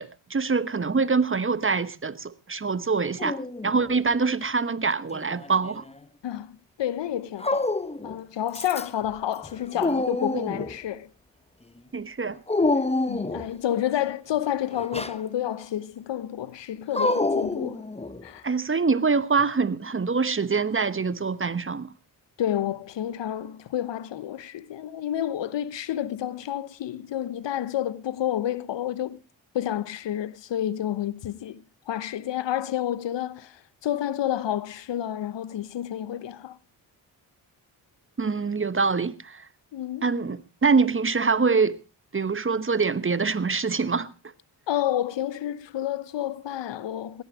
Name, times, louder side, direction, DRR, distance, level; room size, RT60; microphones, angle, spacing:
voice 1, 0.0-3.4 3.6-5.8 11.9-12.4 18.4-21.9 38.2-39.5 40.0-41.8 42.1-44.1, right 4 dB, 25° right, 1.1 m, -24 dB
Dog, 3.2-4.0 5.1-6.0 7.4-8.1 8.5-9.1 9.4-10.8 12.5-13.5 14.7-15.2 16.9-18.3, left 2 dB, 10° left, 1.2 m, -27 dB
voice 2, 6.2-7.7 8.0-11.1 12.8-17.8 18.2-18.5 22.4-29.2 29.5-36.6 39.7-40.1 44.7-47.2, left 11 dB, 60° left, 1.0 m, -30 dB
17.0 x 12.0 x 4.9 m
hypercardioid pair, 45°, 49 cm